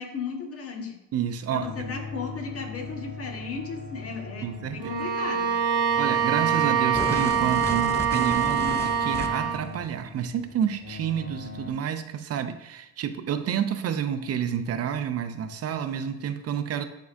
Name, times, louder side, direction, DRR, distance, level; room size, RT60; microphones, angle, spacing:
voice 1, 0.0-1.0 1.5-5.5, left 5 dB, 40° left, 2 dB, 1.3 m, -35 dB
voice 2, 1.1-1.9 4.4-4.9 6.0-16.8, right 8 dB, 45° right, 9 dB, 0.5 m, -29 dB
sound 1, 1.6-11.7, left 3 dB, 80° left, 1.2 m, -41 dB
Bowed string instrument, 4.8-9.7, right 7 dB, 65° right, 1.2 m, -24 dB
sound 2, 6.9-9.6, left 2 dB, 10° left, 0.4 m, -34 dB
10.5 x 3.8 x 2.5 m, 0.96 s
cardioid pair, 100°, 34 cm